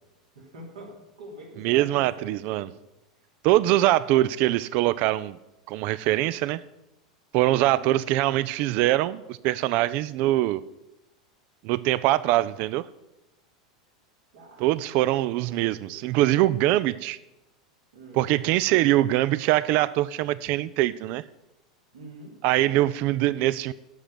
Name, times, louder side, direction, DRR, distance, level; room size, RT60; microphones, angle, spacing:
voice 1, 0.3-2.3 2.6-2.8 14.3-14.8 15.0-16.1 17.9-18.3 21.9-22.4, right 1 dB, 65° right, -1 dB, 3.1 m, -46 dB
voice 2, 1.6-2.7 3.4-5.4 5.7-6.6 7.3-10.6 11.6-12.9 14.6-17.2 18.1-21.2 22.4-23.7, right 16 dB, 45° right, 17 dB, 0.3 m, -23 dB
7.9 x 7.0 x 7.7 m, 0.93 s
figure-of-eight pair, 85°, 3 cm